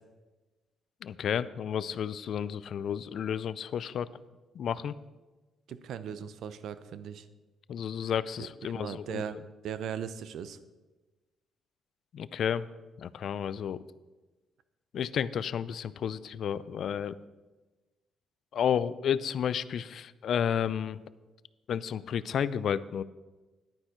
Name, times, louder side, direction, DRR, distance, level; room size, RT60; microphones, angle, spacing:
voice 1, 1.0-4.1 4.5-5.0 7.7-9.2 12.1-12.7 13.0-13.8 14.9-17.2 18.5-21.0 21.7-23.0, left 8 dB, 65° left, 16 dB, 0.4 m, -31 dB
voice 2, 5.7-7.3 8.4-10.6, right 8 dB, 75° right, 13 dB, 0.6 m, -39 dB
10.5 x 9.8 x 4.5 m, 1.2 s
cardioid pair, 90°, 0 cm